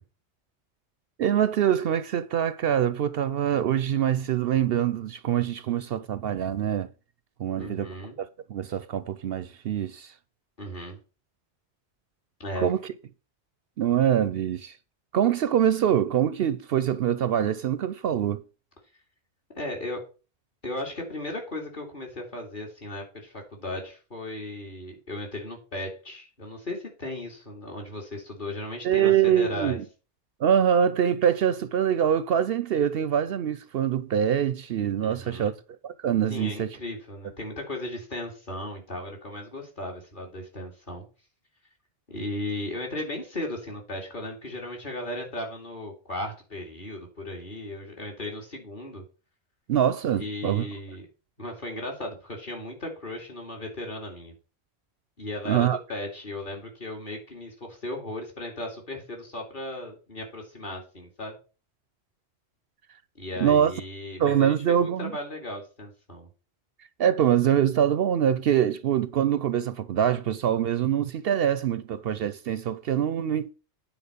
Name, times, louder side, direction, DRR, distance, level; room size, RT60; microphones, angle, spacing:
voice 1, 1.2-6.9 7.4-10.1 12.6-12.8 13.8-14.8 15.1-18.4 28.8-29.8 30.4-35.6 35.8-36.8 49.7-50.7 55.5-55.8 63.4-63.7 64.2-65.1 67.0-73.5, right 9 dB, 65° right, 0.7 m, -24 dB
voice 2, 7.6-8.2 10.6-11.0 12.4-12.7 19.5-20.0 20.6-29.8 35.0-35.6 36.3-41.0 42.1-49.0 50.1-51.1 51.4-54.3 55.2-61.4 63.1-66.3, left 1 dB, 45° left, 2.9 m, -36 dB
9.0 x 4.4 x 6.8 m
omnidirectional pair, 1.1 m